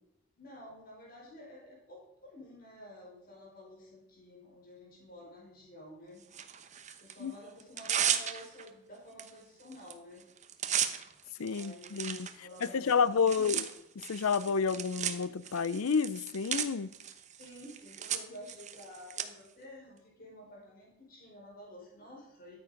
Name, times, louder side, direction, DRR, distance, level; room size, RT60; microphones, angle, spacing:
voice 1, 0.4-6.2 7.0-10.2 11.4-11.9 12.4-13.7 17.4-22.6, left 1 dB, 40° left, -3 dB, 5.4 m, -51 dB
Tearing, 6.3-7.1 7.6-8.7 9.2-9.3 9.6-9.9 10.2-19.2, right 9 dB, 35° right, 0.9 m, -36 dB
voice 2, 11.4-13.6 14.1-16.9, left 5 dB, 85° left, 18 dB, 0.5 m, -30 dB
13.5 x 9.6 x 5.2 m, 0.86 s
head